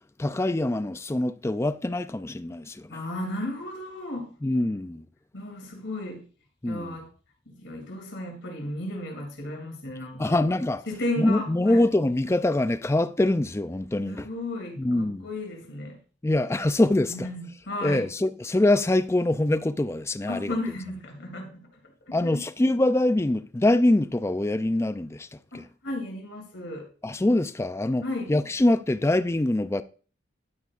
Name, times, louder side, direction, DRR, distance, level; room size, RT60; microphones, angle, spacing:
voice 1, 0.2-2.9 4.4-5.0 6.6-7.0 10.2-10.8 11.2-14.3 14.8-15.3 16.2-17.3 17.8-20.5 22.1-25.3 25.5-25.6 27.0-28.0 28.3-29.8, left 1 dB, 15° left, 0.3 m, -24 dB
voice 2, 2.9-4.3 5.3-6.3 6.6-7.1 7.5-10.4 10.9-11.9 14.0-16.0 17.1-18.1 20.3-22.4 25.5-26.9 28.0-28.3, left 1 dB, 75° left, 2.8 m, -34 dB
12.0 x 8.3 x 2.5 m
head